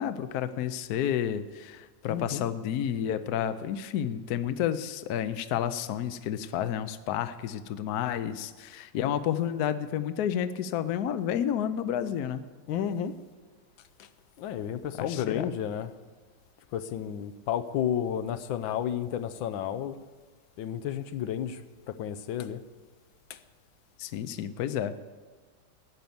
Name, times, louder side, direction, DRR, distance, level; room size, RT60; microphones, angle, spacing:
voice 1, 0.0-12.4 15.0-15.5 24.0-25.0, left 9 dB, 65° left, 1.1 m, -30 dB
voice 2, 2.1-2.5 12.7-13.2 14.0-14.1 14.4-15.9 16.7-20.0 20.6-21.6 21.9-22.6 23.3-23.4, left 9 dB, 85° left, 1.5 m, -32 dB
13.5 x 9.1 x 7.1 m
omnidirectional pair, 2.1 m